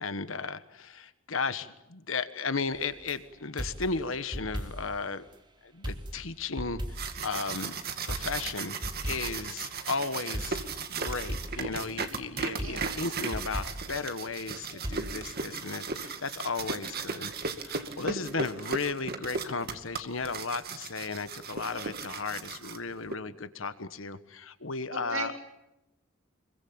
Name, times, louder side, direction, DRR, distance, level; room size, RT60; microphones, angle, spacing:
voice 1, 0.0-5.2 5.6-7.8 8.0-8.8 9.0-10.6 10.9-25.4, left 4 dB, 75° left, 12 dB, 1.3 m, -35 dB
sound 1, 2.7-3.2 3.6-5.0 5.3-5.4 5.8-7.7 8.1-9.5 10.3-12.2 12.6-14.0 14.8-15.4, equal, 25° right, 3.0 m, -38 dB
sound 2, 6.7-23.1, right 4 dB, 50° right, 2.2 m, -36 dB
voice 2, 12.6-13.1 16.8-17.0 18.0-18.4 24.9-25.4, right 4 dB, 90° right, 2 dB, 5.3 m, -39 dB
26.0 x 22.5 x 8.7 m, 0.90 s
head